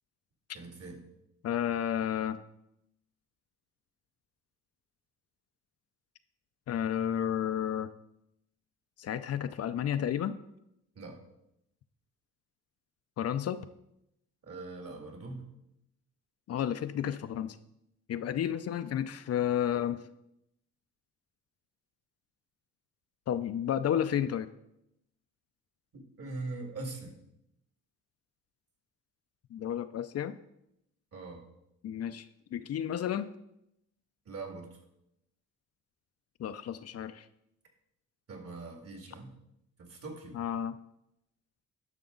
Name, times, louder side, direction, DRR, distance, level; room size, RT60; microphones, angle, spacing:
voice 1, 0.5-1.0 11.0-11.2 14.4-15.5 25.9-27.1 31.1-31.4 34.3-34.7 38.3-39.3 39.8-40.4, right 3 dB, 50° right, 3 dB, 2.3 m, -42 dB
voice 2, 1.4-2.4 6.7-7.9 9.0-10.4 13.2-13.6 16.5-17.6 18.1-20.0 23.3-24.5 29.5-30.3 31.8-33.3 36.4-37.3 40.3-40.8, left 10 dB, 55° left, 11 dB, 0.5 m, -32 dB
11.0 x 5.8 x 3.9 m, 0.82 s
cardioid pair, 90°, 30 cm